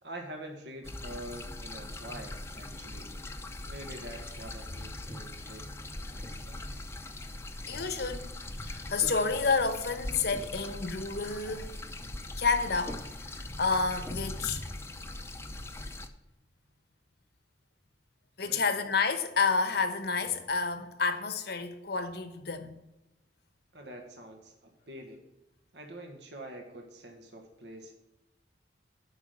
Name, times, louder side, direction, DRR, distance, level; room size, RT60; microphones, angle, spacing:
voice 1, 0.0-3.1 3.7-5.7 6.1-6.7 18.4-18.6 23.7-25.2 25.7-27.9, right 1 dB, 70° right, 1.5 m, -45 dB
sound 1, 0.8-16.1, left 1 dB, 15° left, 0.7 m, -41 dB
voice 2, 7.7-8.3 8.6-11.7 12.4-14.6 18.4-22.8, left 4 dB, 65° left, 1.0 m, -30 dB
8.4 x 5.8 x 7.0 m
head